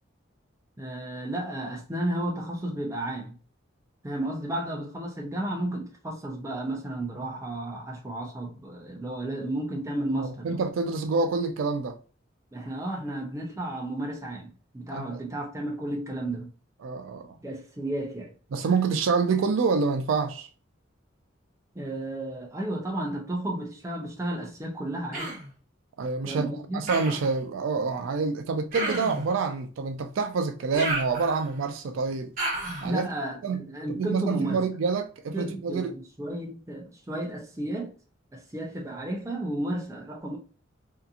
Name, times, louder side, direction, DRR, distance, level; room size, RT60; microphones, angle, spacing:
voice 1, 0.8-3.3 4.0-10.6 12.5-16.5 17.4-18.3 21.7-25.4 26.3-26.8 32.8-34.6 35.3-37.9 38.3-40.4, right 1 dB, 15° right, 0.5 m, -33 dB
voice 2, 10.2-12.0 14.9-15.2 16.8-17.4 18.5-20.5 26.0-32.3 32.8-33.1 33.4-33.6 34.0-35.9, right 4 dB, 85° right, 0.4 m, -27 dB
Human voice, 25.1-25.5 26.9-27.3 28.7-29.3 30.7-31.6 32.4-32.9, right 2 dB, 45° right, 1.1 m, -32 dB
2.8 x 2.4 x 2.4 m
head